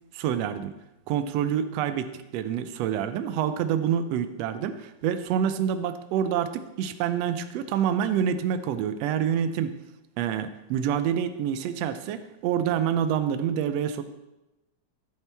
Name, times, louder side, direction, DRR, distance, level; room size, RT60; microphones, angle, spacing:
voice 1, 0.1-0.7 1.1-9.7 10.2-14.0, right 9 dB, 80° right, 10 dB, 1.5 m, -27 dB
14.5 x 8.7 x 3.4 m, 0.95 s
omnidirectional pair, 3.7 m